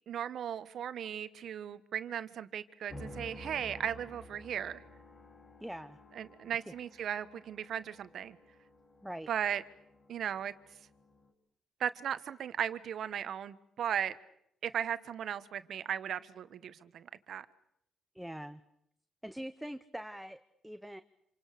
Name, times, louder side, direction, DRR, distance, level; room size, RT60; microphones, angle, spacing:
voice 1, 0.1-4.8 6.2-8.4 9.3-9.6 10.1-10.5 11.8-14.2 14.6-17.4, right 9 dB, 65° right, 1.3 m, -37 dB
sound 1, 2.9-11.3, left 1 dB, 45° left, 4.1 m, -52 dB
voice 2, 5.6-6.0 9.0-9.3 18.1-18.6 19.2-21.0, equal, 5° right, 0.9 m, -43 dB
27.5 x 27.0 x 6.7 m
cardioid pair, 90°, 0 cm